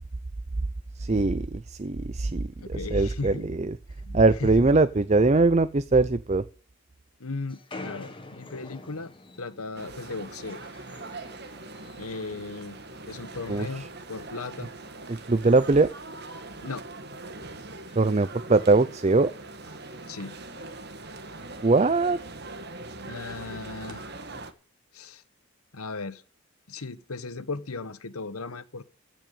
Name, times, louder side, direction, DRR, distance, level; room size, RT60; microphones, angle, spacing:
voice 1, 1.0-3.8 4.1-6.4 13.5-13.9 15.1-15.9 18.0-19.3 21.6-22.2, right 3 dB, 30° right, 0.5 m, -22 dB
voice 2, 2.6-3.5 4.0-4.7 7.2-9.1 9.4-10.6 12.0-12.8 13.0-14.7 16.6-16.8 20.1-20.7 23.0-24.1 24.9-25.2 25.7-26.2 26.7-28.8, left 3 dB, 85° left, 1.2 m, -37 dB
sound 1, 7.5-12.3 12.6-13.6 13.9-14.2 14.7-16.6 17.0-17.1 17.3-17.4 17.7-18.1 18.9-19.1 19.9-20.3, left 2 dB, 25° left, 1.9 m, -48 dB
sound 2, 9.7-24.5, right 2 dB, 50° right, 1.7 m, -42 dB
15.5 x 6.1 x 8.2 m
head